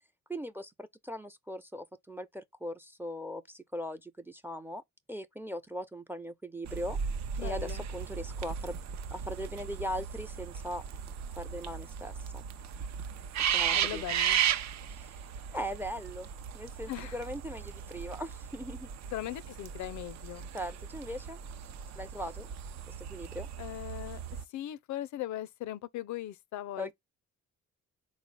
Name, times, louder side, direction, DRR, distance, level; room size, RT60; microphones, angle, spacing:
voice 1, 0.3-4.8 5.1-7.0 7.4-8.8 9.1-10.8 11.4-12.4 13.5-14.0 14.9-15.1 15.5-16.3 16.5-18.9 20.5-21.4 22.0-22.5 22.9-23.5 26.8-26.9, equal, 5° right, 0.4 m, -39 dB
sound 1, 6.6-24.4, right 8 dB, 65° right, 0.5 m, -36 dB
voice 2, 7.4-7.9 13.7-14.4 16.9-17.2 19.1-20.5 23.6-24.2 24.5-26.9, left 13 dB, 70° left, 0.5 m, -39 dB
4.0 x 2.0 x 3.9 m
cardioid pair, 90°, 30 cm